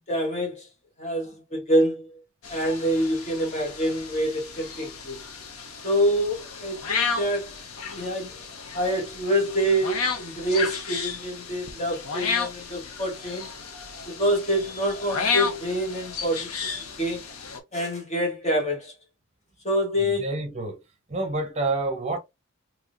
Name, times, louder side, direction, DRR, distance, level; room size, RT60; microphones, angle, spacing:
voice 1, 0.1-0.7 1.0-2.2 2.5-5.2 5.8-8.4 8.7-13.5 14.1-16.7 17.0-17.2 17.7-18.9 19.6-20.3, equal, 30° left, 1.1 m, -26 dB
sound 1, 2.4-17.6, left 5 dB, 85° left, 0.8 m, -33 dB
voice 2, 20.0-20.8 21.1-22.2, right 2 dB, 30° right, 0.8 m, -28 dB
3.5 x 2.7 x 2.5 m
head